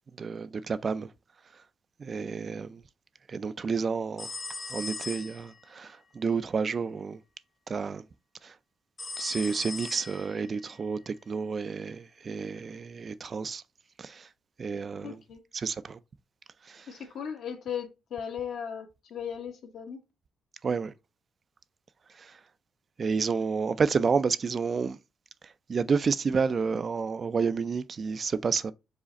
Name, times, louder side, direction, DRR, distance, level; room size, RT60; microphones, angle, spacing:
voice 1, 0.2-1.1 2.0-2.8 3.3-4.3 4.7-7.2 7.7-8.0 8.4-8.5 9.2-13.6 14.0-14.3 14.6-15.2 15.5-16.0 16.7-16.9 20.6-20.9 23.0-25.0 25.7-28.7, right 5 dB, 40° right, 0.3 m, -30 dB
sound 1, 4.2-5.6 9.0-10.6, left 4 dB, 35° left, 0.8 m, -39 dB
voice 2, 15.0-15.4 16.9-20.0 23.3-23.4, left 8 dB, 70° left, 1.1 m, -37 dB
4.9 x 2.4 x 4.0 m
cardioid pair, 90°, 0 cm